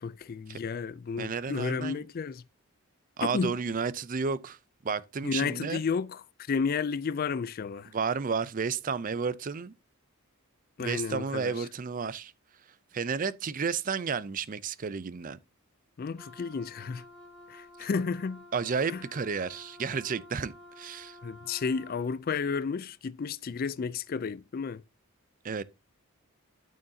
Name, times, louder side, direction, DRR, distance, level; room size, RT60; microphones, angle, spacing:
voice 1, 0.0-2.4 3.2-3.6 5.2-6.2 6.5-7.9 10.8-11.5 16.0-17.0 17.5-18.4 18.9-19.0 21.2-24.8, left 5 dB, 40° left, 0.3 m, -32 dB
voice 2, 1.2-2.1 3.2-4.6 4.8-5.8 7.9-9.7 10.8-12.3 12.9-15.4 18.5-21.2 25.4-25.6, right 5 dB, 35° right, 0.4 m, -32 dB
Wind instrument woodwind instrument, 16.1-22.1, left 1 dB, 5° left, 2.1 m, -51 dB
12.5 x 6.4 x 2.7 m
head